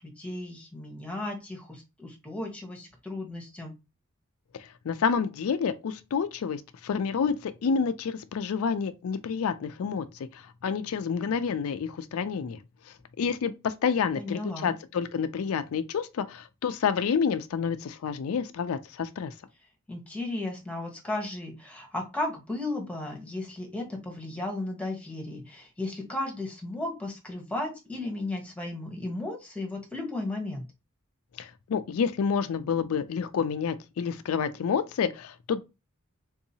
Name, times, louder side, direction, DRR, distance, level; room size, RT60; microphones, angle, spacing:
voice 1, 0.0-3.8 14.2-14.7 19.9-30.6, left 2 dB, 5° left, 1.0 m, -35 dB
voice 2, 4.8-10.1 10.3-12.6 13.2-19.3 31.4-35.6, left 6 dB, 85° left, 0.4 m, -29 dB
3.8 x 2.7 x 2.7 m
head